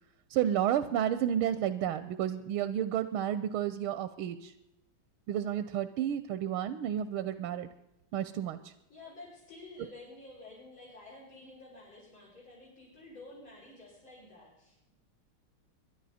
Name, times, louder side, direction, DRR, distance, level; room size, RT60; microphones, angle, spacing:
voice 1, 0.3-4.5 5.3-7.7 8.1-8.7, right 10 dB, 90° right, 12 dB, 1.6 m, -31 dB
voice 2, 8.9-14.9, left 2 dB, 70° left, -7 dB, 6.8 m, -51 dB
23.0 x 11.0 x 4.2 m, 0.85 s
omnidirectional pair, 2.3 m